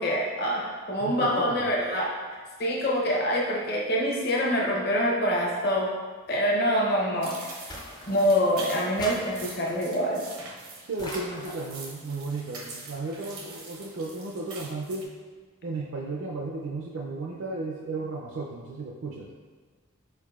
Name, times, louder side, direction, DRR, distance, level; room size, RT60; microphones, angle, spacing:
voice 1, 0.0-2.1 2.6-5.9 6.3-7.5 8.1-10.2, equal, 45° left, -3 dB, 0.8 m, -25 dB
voice 2, 1.0-1.7 10.8-15.1 15.6-19.3, right 3 dB, 65° right, -3 dB, 0.4 m, -34 dB
sound 1, 7.2-15.0, right 3 dB, 90° right, 0.8 m, -43 dB
sound 2, 7.7-8.5 9.0-9.9 11.0-11.8, left 1 dB, 20° left, 0.4 m, -40 dB
4.6 x 4.5 x 2.3 m, 1.4 s
head